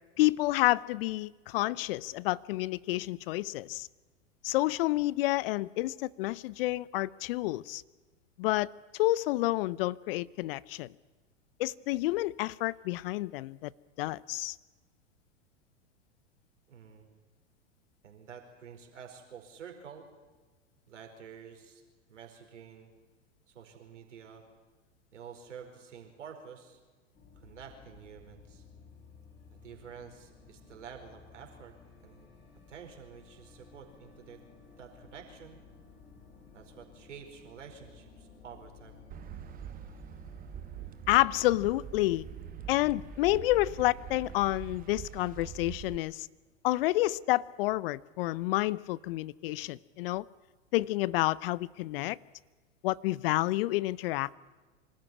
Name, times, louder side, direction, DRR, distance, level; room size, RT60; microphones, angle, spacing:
voice 1, 0.2-3.9 4.4-7.8 8.4-10.9 11.6-13.7 14.0-14.6 41.1-42.2 42.7-46.3 46.6-50.3 50.7-52.2 52.8-54.4, left 18 dB, 50° left, 0.6 m, -29 dB
voice 2, 16.7-17.1 18.0-20.1 20.9-21.8 22.1-22.9 23.5-24.4 25.1-26.8 27.4-28.6 29.6-31.8 32.0-32.3 32.7-34.4 34.8-35.6 36.5-39.0, right 7 dB, 75° right, 4.7 m, -49 dB
sound 1, 27.1-44.6, left 5 dB, 30° left, 4.2 m, -55 dB
sound 2, 39.1-46.0, right 12 dB, 25° right, 1.0 m, -44 dB
25.0 x 13.5 x 9.8 m
hypercardioid pair, 105°, 37 cm